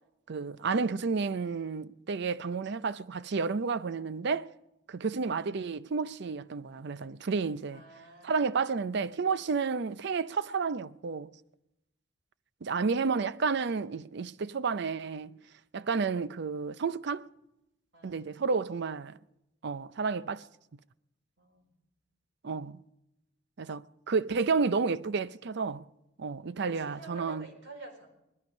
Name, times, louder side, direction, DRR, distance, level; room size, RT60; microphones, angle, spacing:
voice 1, 0.3-4.5 4.9-7.8 8.2-11.3 12.6-15.4 15.7-17.3 18.0-19.2 19.6-20.4 22.4-22.8 23.6-25.8 26.2-27.5, right 4 dB, 65° right, 0.5 m, -31 dB
voice 2, 7.7-8.7 17.9-18.3 21.4-21.7 26.5-28.1, right 2 dB, 90° right, 4.6 m, -49 dB
19.5 x 13.5 x 5.4 m
head